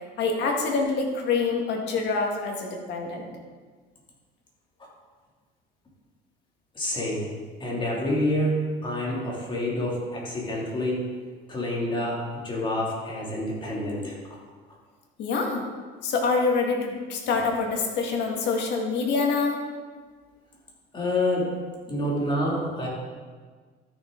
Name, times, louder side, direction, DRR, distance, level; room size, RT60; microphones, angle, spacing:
voice 1, 0.2-3.3 15.2-15.6 16.0-19.6, left 4 dB, 65° left, 1 dB, 2.0 m, -26 dB
voice 2, 6.7-7.3 7.6-11.1 11.5-14.4 20.9-21.6 21.9-22.9, left 1 dB, 25° left, -4 dB, 2.6 m, -28 dB
13.5 x 6.6 x 3.9 m, 1.5 s
cardioid pair, 125°, 20 cm